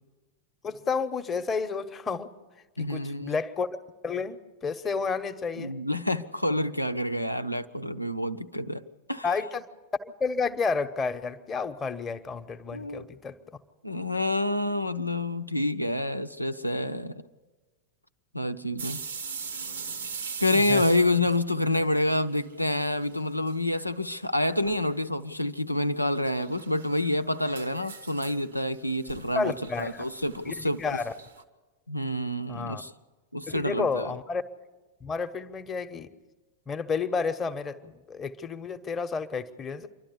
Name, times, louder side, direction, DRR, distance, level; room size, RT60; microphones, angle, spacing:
voice 1, 0.6-2.3 2.8-3.8 4.0-5.7 9.2-9.7 10.0-13.6 20.5-20.8 29.3-30.0 30.5-31.1 32.5-32.8 33.5-34.4 35.0-36.1 36.7-39.9, left 5 dB, 20° left, 8 dB, 1.0 m, -31 dB
voice 2, 2.8-3.4 5.6-9.3 12.7-13.0 13.8-17.2 18.3-19.0 20.4-30.8 31.9-32.9 33.3-34.1, left 1 dB, 90° left, 9 dB, 0.6 m, -28 dB
sound 1, 18.8-22.6 22.9-23.6 23.9-24.0 24.6-25.0 26.0-31.4, right 5 dB, 70° right, 1.1 m, -41 dB
27.5 x 12.0 x 8.2 m, 1.3 s
figure-of-eight pair, 90°, 0 cm